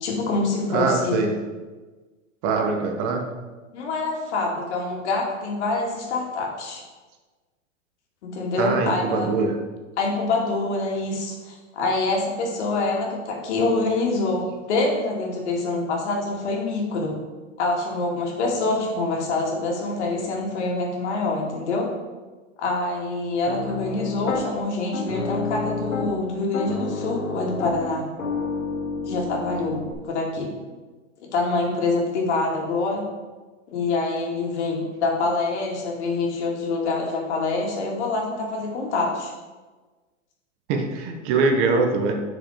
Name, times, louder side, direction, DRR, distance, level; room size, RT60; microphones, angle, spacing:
voice 1, 0.0-1.3 3.7-6.8 8.2-9.3 10.0-17.2 17.6-21.9 22.6-28.0 29.1-30.5 31.2-33.0 33.7-39.3, left 3 dB, 60° left, -1 dB, 2.6 m, -25 dB
voice 2, 0.7-1.4 2.4-3.3 8.6-9.6 40.7-42.1, right 4 dB, 35° right, 4 dB, 1.1 m, -23 dB
Piano, 23.5-24.4 24.9-26.2 26.5-29.9, left 4 dB, 90° left, 2.0 m, -29 dB
7.8 x 6.4 x 5.0 m, 1.3 s
hypercardioid pair, 135°, 39 cm